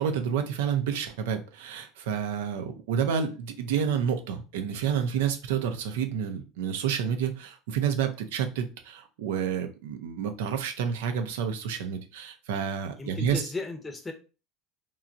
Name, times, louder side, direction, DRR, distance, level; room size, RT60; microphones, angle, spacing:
voice 1, 0.0-13.4, right 7 dB, 80° right, 0.5 m, -29 dB
voice 2, 13.0-14.1, left 3 dB, 20° left, 0.7 m, -35 dB
3.0 x 2.3 x 2.5 m
hypercardioid pair, 80°, 0 cm